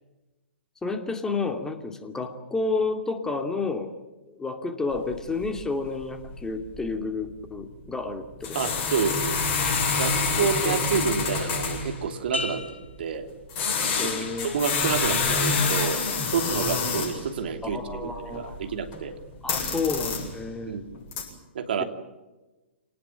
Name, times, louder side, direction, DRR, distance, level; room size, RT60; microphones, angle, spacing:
voice 1, 0.8-3.9 4.3-8.7 10.6-10.8 14.0-14.5 17.6-18.6 19.4-20.8, left 3 dB, 10° left, 6 dB, 2.6 m, -30 dB
sound 1, 4.9-5.0 5.3-5.6 5.9-6.0 6.3-6.4 6.7-6.9 8.4-12.0 13.5-17.3 17.6-19.0 19.3-20.5 20.9-21.2, left 4 dB, 30° left, 7.8 m, -27 dB
voice 2, 8.5-9.5 9.9-12.6 13.0-13.3 14.0-14.1 14.4-16.0 16.3-19.2 20.7-20.8 21.5-21.8, right 6 dB, 55° right, 6 dB, 3.1 m, -28 dB
sound 2, 12.3-14.1 14.6-15.1, left 3 dB, 75° left, 5.3 m, -37 dB
26.5 x 19.0 x 9.1 m, 1.1 s
figure-of-eight pair, 120°, 6 cm